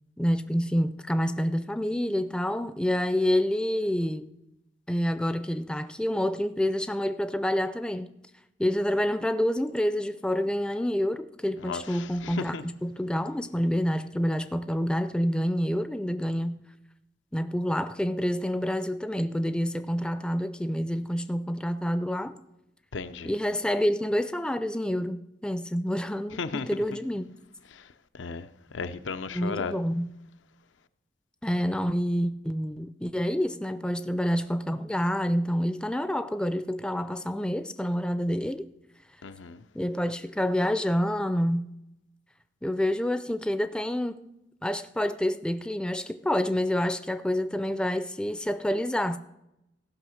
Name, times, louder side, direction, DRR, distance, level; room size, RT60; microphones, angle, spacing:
voice 1, 0.2-4.3 4.9-8.2 8.6-16.7 17.3-22.4 23.2-27.2 29.3-30.1 31.4-38.7 39.7-41.7 42.6-44.3 44.6-49.2, equal, 5° left, 0.4 m, -28 dB
voice 2, 12.2-12.6 22.9-23.3 26.4-26.7 28.2-28.4 28.7-29.7 39.2-39.6, left 4 dB, 80° left, 0.6 m, -34 dB
15.0 x 5.6 x 6.3 m
head